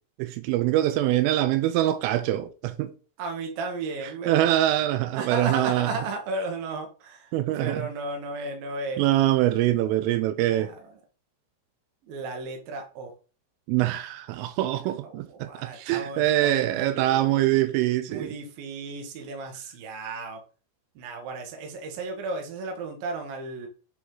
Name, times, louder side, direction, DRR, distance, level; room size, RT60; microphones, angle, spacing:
voice 1, 0.2-2.9 4.3-5.9 7.3-7.8 9.0-10.7 13.7-18.3, right 14 dB, 85° right, 3.3 m, -24 dB
voice 2, 3.2-4.5 5.2-9.0 10.4-10.9 12.0-13.1 15.0-17.4 18.1-20.4 21.0-23.7, right 3 dB, 60° right, 2.8 m, -34 dB
9.5 x 4.0 x 3.9 m
omnidirectional pair, 5.7 m